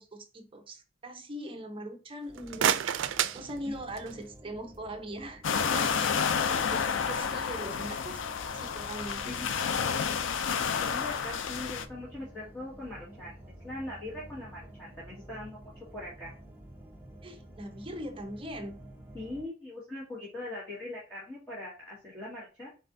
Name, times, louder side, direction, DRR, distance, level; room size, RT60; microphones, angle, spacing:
voice 1, 0.0-2.8 3.3-6.0 6.5-8.2 8.5-9.4 17.2-18.8, right 1 dB, 30° right, 5 dB, 0.8 m, -41 dB
sound 1, 2.2-4.3, right 9 dB, 90° right, 0.4 m, -30 dB
sound 2, 2.3-19.4, right 1 dB, 10° right, 1.0 m, -50 dB
sound 3, 5.4-11.9, left 6 dB, 85° left, 0.5 m, -30 dB
voice 2, 10.8-16.3 19.1-22.7, left 1 dB, 15° left, -9 dB, 1.7 m, -41 dB
4.4 x 4.2 x 2.6 m, 0.33 s
head